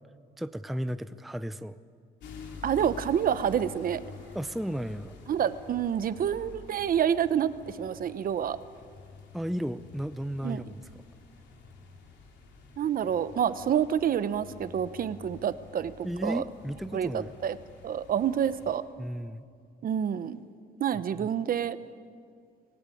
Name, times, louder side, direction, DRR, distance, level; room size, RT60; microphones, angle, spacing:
voice 1, 0.4-1.8 4.3-5.1 9.3-10.8 16.0-17.4 19.0-19.4 21.2-21.3, equal, ahead, 12 dB, 0.5 m, -34 dB
sound 1, 2.2-18.8, left 5 dB, 80° left, 3.3 m, -48 dB
voice 2, 2.6-4.0 5.3-8.6 10.4-10.6 12.8-16.4 16.9-17.6 17.8-18.8 19.8-20.4 20.8-21.8, right 9 dB, 50° right, 13 dB, 0.9 m, -28 dB
25.5 x 16.5 x 8.5 m, 2.1 s
cardioid pair, 120°, 18 cm